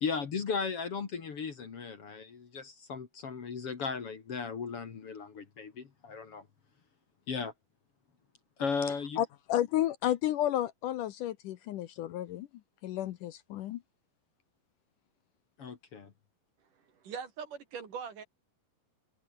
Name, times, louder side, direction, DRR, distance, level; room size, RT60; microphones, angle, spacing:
voice 1, 0.0-6.5 7.3-7.5 8.6-9.2 15.6-16.1, left 5 dB, 45° left, 2.7 m, -36 dB
voice 2, 9.2-12.5 12.8-13.8, left 12 dB, 70° left, 2.3 m, -32 dB
voice 3, 17.0-18.2, right 6 dB, 60° right, 4.6 m, -41 dB
omnidirectional pair, 4.2 m